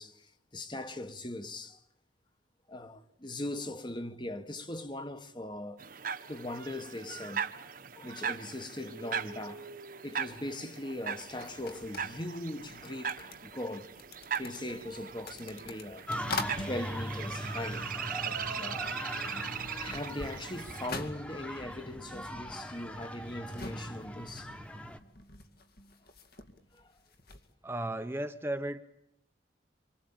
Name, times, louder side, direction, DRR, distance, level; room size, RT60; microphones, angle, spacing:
voice 1, 0.0-1.8 2.7-5.8 6.3-7.5 7.9-9.7 10.0-13.9 14.4-16.1 16.6-17.9 18.3-18.9 19.8-24.5 26.7-26.9, left 1 dB, 25° left, 1.6 m, -40 dB
sound 1, 5.8-20.9, right 7 dB, 45° right, 1.4 m, -40 dB
sound 2, 11.2-18.5 18.7-27.5, left 3 dB, 55° left, 2.4 m, -45 dB
sound 3, 16.1-25.0, equal, 5° left, 1.6 m, -40 dB
voice 2, 27.6-28.8, right 1 dB, 10° right, 1.0 m, -34 dB
27.0 x 25.0 x 8.9 m
head